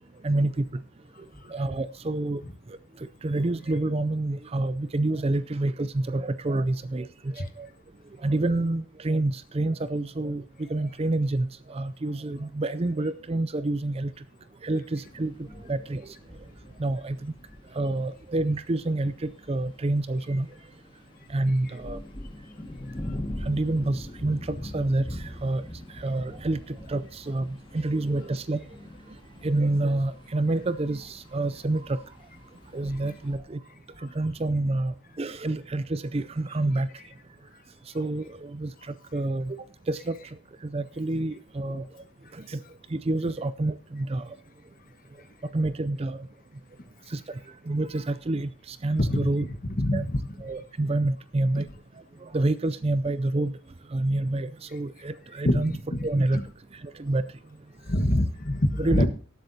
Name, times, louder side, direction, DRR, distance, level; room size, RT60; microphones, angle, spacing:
voice 1, 0.2-0.6 1.5-2.4 2.7-2.8 3.2-7.7 8.2-14.1 14.6-16.2 16.8-17.3 17.7-20.5 21.3-22.0 23.4-25.6 25.9-28.6 29.4-32.0 32.7-33.6 34.0-36.9 37.9-39.6 39.9-40.2 40.6-41.8 42.3-42.6 42.9-44.3 45.5-46.3 47.1-47.4 47.7-49.5 49.9-50.0 50.4-51.7 52.2-53.5 53.9-55.7 56.0-56.4 56.8-57.2 58.8-59.0, right 2 dB, 25° right, 14 dB, 0.4 m, -28 dB
sound 1, 15.0-33.4, left 1 dB, 20° left, 1.8 m, -42 dB
voice 2, 49.0-49.5 49.8-50.2 55.4-56.1 57.9-59.1, left 1 dB, 40° left, 9 dB, 1.2 m, -25 dB
18.5 x 8.0 x 2.8 m, 0.43 s
head